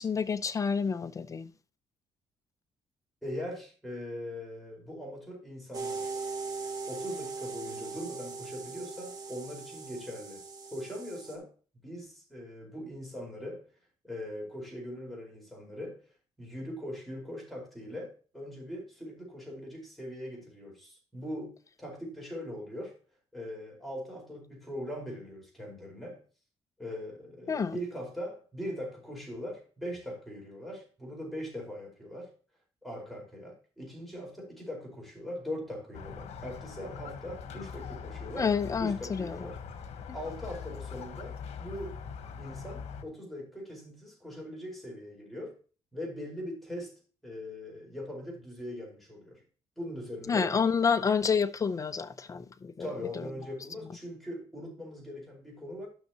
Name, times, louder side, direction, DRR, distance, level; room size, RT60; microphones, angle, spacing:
voice 1, 0.0-1.5 27.5-27.8 38.4-39.4 50.3-52.9 53.1-53.3, left 6 dB, 30° left, 0.6 m, -29 dB
voice 2, 3.2-6.1 6.9-10.4 10.7-11.5 11.8-13.6 14.0-16.0 16.4-21.5 21.8-22.9 23.3-26.2 26.8-32.3 32.8-38.5 38.8-39.6 40.1-41.9 42.4-45.6 45.9-46.9 47.2-49.4 49.8-50.5 52.8-55.9, equal, ahead, 4.8 m, -41 dB
sound 1, 5.7-11.3, right 4 dB, 35° right, 2.1 m, -39 dB
Squeak, 35.9-43.0, left 6 dB, 75° left, 1.2 m, -42 dB
12.0 x 6.6 x 3.0 m
cardioid pair, 120°, 11 cm